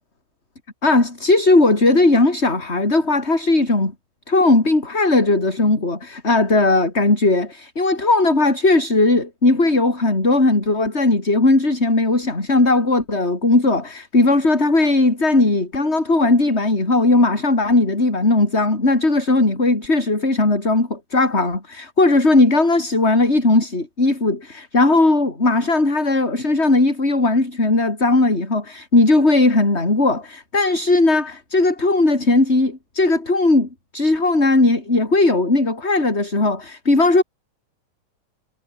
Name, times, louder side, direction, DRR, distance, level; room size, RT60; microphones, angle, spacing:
voice 1, 0.8-3.9 4.3-37.2, left 2 dB, 30° left, 4.7 m, -17 dB
omnidirectional pair, 2.3 m